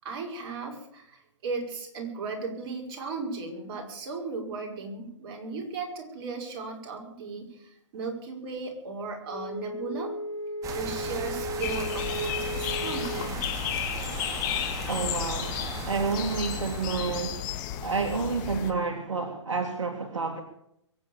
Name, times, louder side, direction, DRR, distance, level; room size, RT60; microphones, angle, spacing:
voice 1, 0.0-10.1 10.7-13.4, right 4 dB, 45° right, 2 dB, 5.3 m, -36 dB
Wind instrument woodwind instrument, 9.3-13.4, equal, 70° left, 6.8 m, -35 dB
sound 1, 10.6-17.2, right 4 dB, 20° right, 2.1 m, -37 dB
sound 2, 11.6-18.7, left 11 dB, 40° left, 2.2 m, -33 dB
voice 2, 14.9-17.5 17.8-20.4, right 4 dB, 75° right, 5 dB, 2.2 m, -30 dB
23.0 x 8.9 x 7.1 m, 0.77 s
hypercardioid pair, 130°, 16 cm